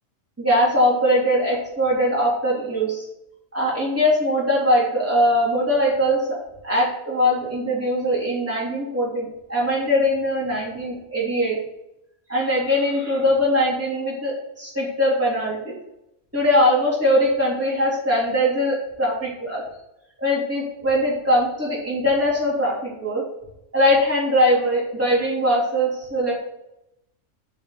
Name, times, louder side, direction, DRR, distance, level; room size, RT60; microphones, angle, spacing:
voice 1, 0.4-3.1 3.5-6.4 6.6-11.6 12.3-15.7 16.3-19.1 19.4-19.6 20.2-23.2 23.7-26.4, equal, 10° right, -8 dB, 3.7 m, -21 dB
7.3 x 5.7 x 6.0 m, 0.85 s
omnidirectional pair, 1.3 m